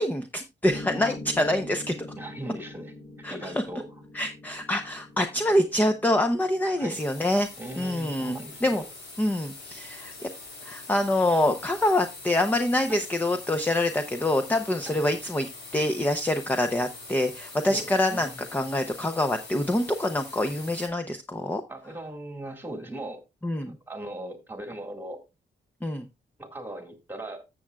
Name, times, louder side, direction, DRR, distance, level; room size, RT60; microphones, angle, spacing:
voice 1, 0.0-1.9 3.2-3.5 4.1-7.5 7.8-8.8 9.2-10.1 10.6-21.6 23.4-23.7 25.8-26.1, left 1 dB, 10° left, 6 dB, 0.7 m, -26 dB
Piano, 0.6-8.7, left 2 dB, 75° left, 5.7 m, -44 dB
voice 2, 2.2-2.9 3.3-3.9 6.8-7.0 7.6-8.9 12.9-13.0 14.9-15.0 17.6-18.3 21.7-23.2 23.6-25.2 26.4-27.4, right 1 dB, 10° right, 6 dB, 1.8 m, -39 dB
sound 1, 6.9-20.9, left 3 dB, 60° left, 4.2 m, -44 dB
14.0 x 7.5 x 2.3 m, 0.23 s
wide cardioid pair, 160°, 20 cm